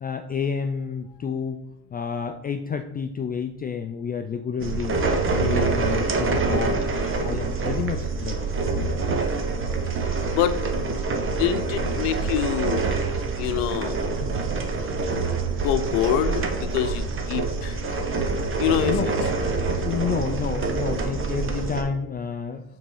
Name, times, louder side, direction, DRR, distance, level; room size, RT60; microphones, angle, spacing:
voice 1, 0.0-1.6 1.9-5.0 5.4-8.4 8.7-8.8 14.2-14.4 18.8-19.1 19.8-22.6, left 6 dB, 25° left, 7 dB, 0.3 m, -30 dB
sound 1, 4.6-21.8, right 3 dB, 30° right, 1.1 m, -26 dB
voice 2, 10.1-10.6 11.3-12.8 13.4-14.0 15.1-17.8 18.6-19.1 19.7-20.0, left 11 dB, 75° left, 11 dB, 0.8 m, -26 dB
6.6 x 3.7 x 5.5 m, 0.90 s
supercardioid pair, 95°, 42 cm